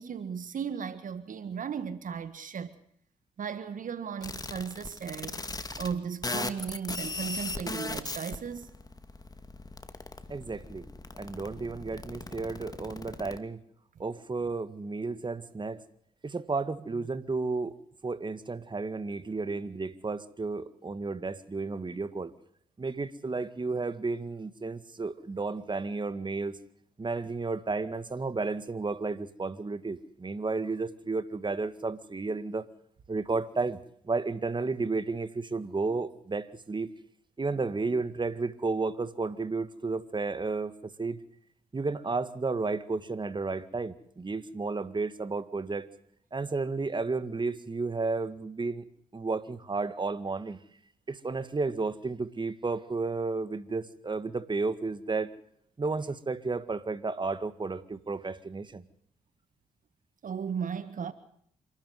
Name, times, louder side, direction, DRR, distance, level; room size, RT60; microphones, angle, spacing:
voice 1, 0.0-2.7 3.4-5.4 5.8-8.7 37.5-37.6 60.2-61.1, right 7 dB, 60° right, 1.6 m, -36 dB
sound 1, 4.2-5.9 6.2-13.4, left 3 dB, 25° left, 2.2 m, -38 dB
voice 2, 10.3-10.9 11.2-13.6 14.0-15.8 16.2-17.7 18.0-22.3 22.8-26.5 27.0-32.7 33.1-33.8 34.1-36.9 37.4-41.2 41.7-45.9 46.3-48.8 49.1-50.6 51.1-55.3 55.8-58.8, right 3 dB, 30° right, 1.9 m, -32 dB
27.0 x 13.0 x 8.0 m
supercardioid pair, 50°, 15 cm